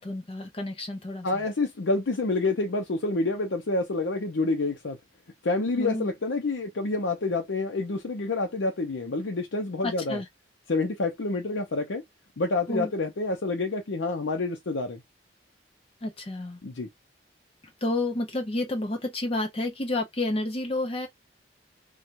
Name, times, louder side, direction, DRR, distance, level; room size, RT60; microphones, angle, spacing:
voice 1, 0.0-1.4 5.8-6.1 9.8-10.3 12.7-12.9 16.0-16.6 17.8-21.1, left 2 dB, 30° left, 0.7 m, -30 dB
voice 2, 1.2-5.0 5.4-10.2 10.7-12.0 12.4-15.0 16.6-16.9, left 3 dB, 85° left, 0.7 m, -28 dB
4.4 x 2.3 x 2.5 m
head